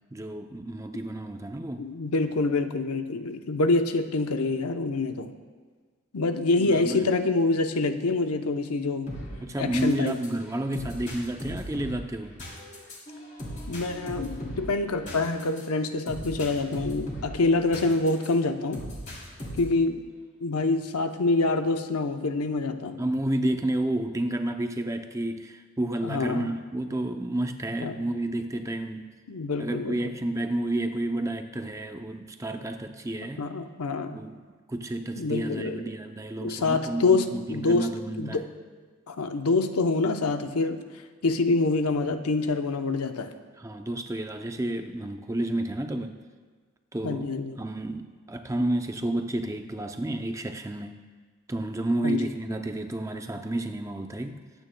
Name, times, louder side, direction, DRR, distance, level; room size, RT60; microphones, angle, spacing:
voice 1, 0.1-1.8 6.7-7.1 9.4-12.4 23.0-29.1 29.6-33.5 34.1-34.4 34.7-38.5 43.6-46.2 46.9-47.3 47.6-51.0 51.5-54.4, right 1 dB, 15° right, 6 dB, 0.4 m, -30 dB
voice 2, 1.8-5.3 6.1-9.1 9.6-10.2 13.7-18.8 19.6-20.0 20.4-23.0 26.0-26.5 27.8-28.0 29.3-30.1 33.4-34.2 35.2-35.9 36.4-37.9 38.2-38.4 39.1-40.8 41.2-43.3 47.0-47.6 52.0-52.3, left 3 dB, 85° left, 7 dB, 0.7 m, -26 dB
sound 1, 9.1-18.3 18.7-19.8, equal, 35° left, 3.0 m, -39 dB
23.0 x 9.0 x 2.2 m, 1.5 s
head